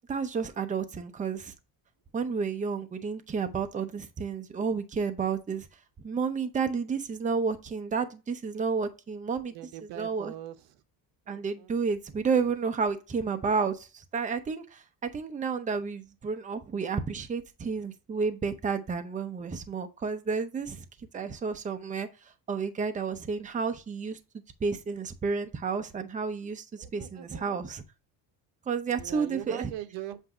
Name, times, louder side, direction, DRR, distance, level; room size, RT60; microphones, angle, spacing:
voice 1, 0.1-1.5 2.1-5.7 6.0-9.5 10.0-10.3 11.3-14.8 15.1-20.9 21.1-22.1 22.5-24.2 24.6-26.6 26.9-27.8 28.7-29.7, right 5 dB, 20° right, 0.6 m, -31 dB
voice 2, 9.5-10.8 11.3-11.7 26.8-27.6 28.9-30.2, right 13 dB, 75° right, 1.0 m, -42 dB
7.7 x 2.8 x 4.9 m
cardioid pair, 130°, 43 cm